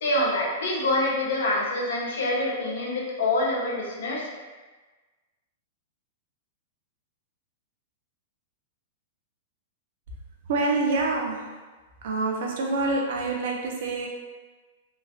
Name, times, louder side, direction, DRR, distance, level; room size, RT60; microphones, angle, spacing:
voice 1, 0.0-4.3, left 1 dB, 75° left, -3 dB, 0.7 m, -26 dB
voice 2, 10.4-11.6 12.0-14.1, right 3 dB, 50° right, 0 dB, 0.4 m, -26 dB
3.1 x 2.5 x 2.3 m, 1.3 s
supercardioid pair, 180°, 0 cm